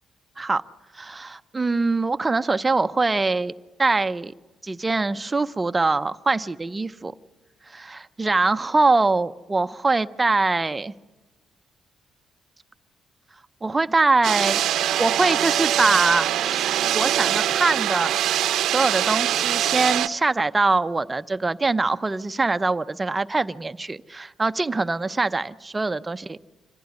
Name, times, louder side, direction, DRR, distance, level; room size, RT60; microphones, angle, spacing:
voice 1, 0.9-3.5 3.8-4.3 4.6-7.1 7.7-10.9 13.6-14.6 15.0-18.2 18.6-26.4, right 3 dB, 20° right, 13 dB, 0.7 m, -23 dB
sound 1, 14.2-20.1, right 11 dB, 80° right, 0.7 m, -23 dB
26.0 x 15.5 x 9.7 m, 1.2 s
cardioid pair, 85°, 0 cm